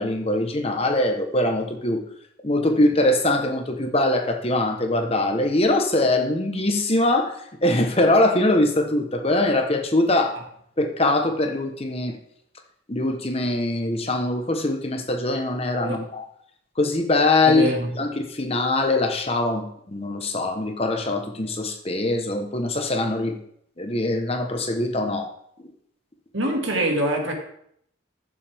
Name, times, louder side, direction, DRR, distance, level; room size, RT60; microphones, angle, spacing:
voice 1, 0.0-2.0 2.4-7.3 7.6-10.4 10.8-12.1 12.9-16.2 16.8-17.7 17.9-23.3 23.8-25.3, left 2 dB, 30° left, 5 dB, 1.0 m, -22 dB
voice 2, 17.5-17.9 26.3-27.3, right 1 dB, 65° right, 1 dB, 2.2 m, -24 dB
14.5 x 7.4 x 3.5 m, 0.68 s
head